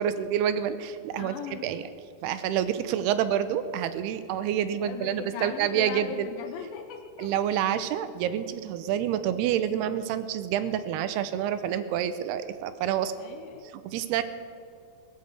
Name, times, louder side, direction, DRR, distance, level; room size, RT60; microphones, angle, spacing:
voice 1, 0.0-1.8 2.2-6.3 7.2-13.1 13.7-14.2, right 10 dB, 80° right, 12 dB, 2.6 m, -28 dB
voice 2, 1.2-1.8 4.8-7.6 13.2-13.7, left 8 dB, 85° left, 7 dB, 2.2 m, -39 dB
18.5 x 7.9 x 8.1 m, 2.3 s
omnidirectional pair, 4.8 m